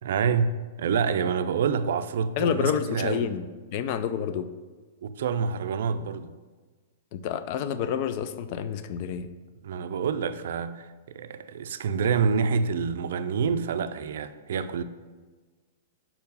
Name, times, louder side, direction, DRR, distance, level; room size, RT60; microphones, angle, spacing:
voice 1, 0.0-3.3 5.0-6.3 9.6-10.9 11.1-14.8, right 6 dB, 65° right, 0.4 m, -27 dB
voice 2, 2.4-3.5 3.7-4.5 7.1-9.3, left 8 dB, 40° left, 0.4 m, -28 dB
5.6 x 4.6 x 5.3 m
hypercardioid pair, 165°, 0 cm